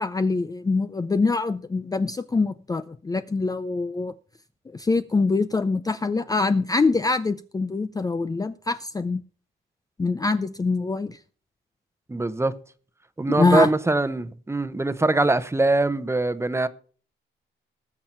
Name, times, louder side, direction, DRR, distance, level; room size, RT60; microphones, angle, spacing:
voice 1, 0.0-4.1 4.7-9.2 10.0-11.2 13.3-13.7, left 3 dB, 20° left, 0.5 m, -24 dB
voice 2, 12.1-12.5 13.2-16.7, right 2 dB, 15° right, 1.0 m, -22 dB
19.5 x 7.1 x 4.4 m
cardioid pair, 90°, 20 cm